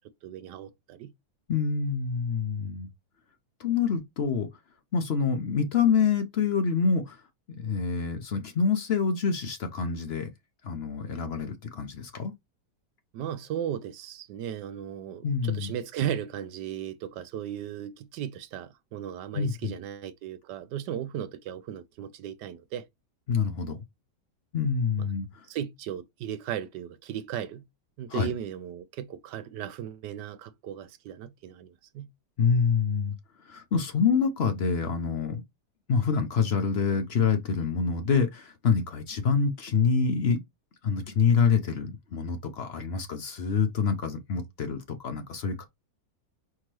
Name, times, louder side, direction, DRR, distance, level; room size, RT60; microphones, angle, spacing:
voice 1, 0.2-1.1 13.1-22.9 25.0-25.1 25.5-27.6 28.0-32.1, right 10 dB, 75° right, 1.2 m, -36 dB
voice 2, 1.5-2.9 3.6-4.5 4.9-7.2 7.6-10.3 10.6-12.3 15.2-15.7 19.3-19.7 23.3-23.8 24.5-25.3 28.1-28.3 32.4-33.1 33.4-35.4 35.9-40.4 40.8-45.6, left 6 dB, 55° left, 0.7 m, -26 dB
4.7 x 3.5 x 3.0 m
omnidirectional pair, 1.9 m